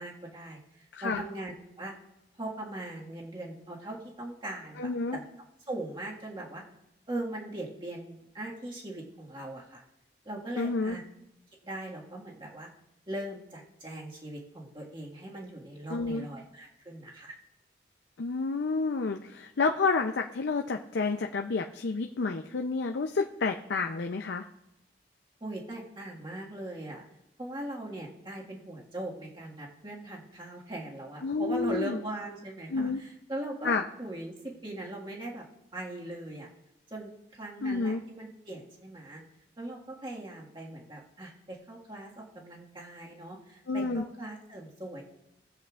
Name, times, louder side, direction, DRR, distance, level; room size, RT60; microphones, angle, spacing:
voice 1, 0.0-2.0 2.4-5.2 5.7-6.6 7.1-9.8 10.3-11.0 11.6-12.7 13.1-17.3 25.4-27.0 27.4-33.7 34.0-35.4 35.7-36.5 36.9-39.2 39.6-45.0, right 1 dB, 30° right, -3 dB, 1.7 m, -40 dB
voice 2, 4.8-5.2 10.6-11.0 15.9-16.3 18.2-24.4 31.2-32.0 32.7-33.0 33.6-33.8 37.6-38.0 43.7-44.0, left 4 dB, 85° left, 3 dB, 0.5 m, -29 dB
18.5 x 7.9 x 2.4 m, 0.87 s
head